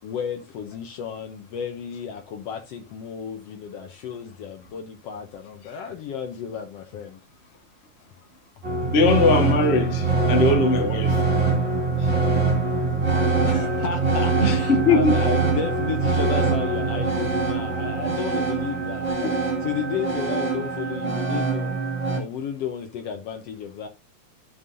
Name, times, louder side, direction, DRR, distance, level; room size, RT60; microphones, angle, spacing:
voice 1, 0.0-7.2 13.4-19.1 19.4-21.8 22.1-23.9, left 7 dB, 70° left, 1.7 m, -33 dB
sound 1, 8.6-22.2, right 4 dB, 20° right, 2.8 m, -23 dB
voice 2, 8.9-11.2 14.4-15.2 19.2-19.3, left 3 dB, 35° left, 1.1 m, -20 dB
14.0 x 5.5 x 2.6 m
omnidirectional pair, 3.3 m